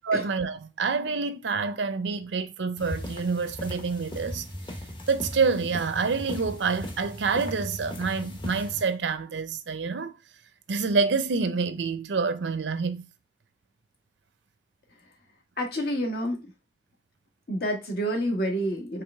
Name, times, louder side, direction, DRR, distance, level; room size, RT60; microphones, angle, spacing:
voice 1, 0.1-4.5 5.1-10.1 10.7-13.0, right 4 dB, 85° right, 0.6 m, -27 dB
sound 1, 2.8-8.8, left 1 dB, 25° left, 0.9 m, -38 dB
voice 2, 15.6-16.4 17.5-19.0, equal, 60° left, 1.3 m, -28 dB
4.8 x 3.3 x 3.3 m
head